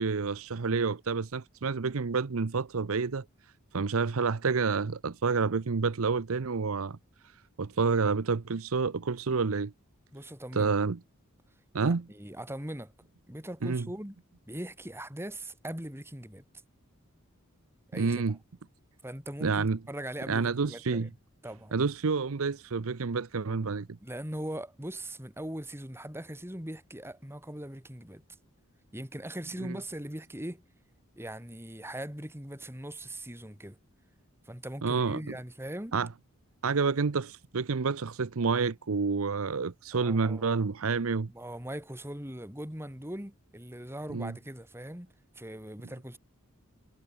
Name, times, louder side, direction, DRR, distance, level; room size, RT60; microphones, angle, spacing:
voice 1, 0.0-3.2 3.7-7.0 7.6-9.7 10.5-11.0 11.7-12.1 13.6-13.9 17.9-18.4 19.4-19.8 20.3-21.1 21.7-24.0 34.8-35.2 35.9-36.1 36.6-41.3 44.1-44.3, right 4 dB, 70° right, 0.7 m, -29 dB
voice 2, 10.1-10.8 11.8-12.9 13.3-14.2 14.5-16.4 17.9-18.2 19.0-21.1 21.4-21.7 24.0-28.2 28.9-30.6 31.2-33.8 34.5-36.0 39.9-40.7 41.3-46.2, right 1 dB, 10° right, 4.5 m, -40 dB
head